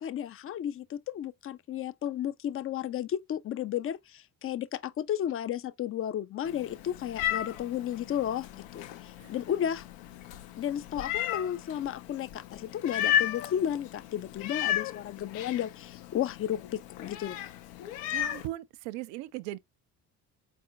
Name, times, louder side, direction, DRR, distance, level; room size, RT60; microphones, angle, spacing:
voice 1, 0.0-9.8 10.6-17.4, left 10 dB, 30° left, 0.4 m, -33 dB
Meow, 6.4-18.5, left 11 dB, 75° left, 0.6 m, -34 dB
voice 2, 18.1-19.6, right 16 dB, 70° right, 0.6 m, -38 dB
4.2 x 2.6 x 3.7 m
hypercardioid pair, 50°, 46 cm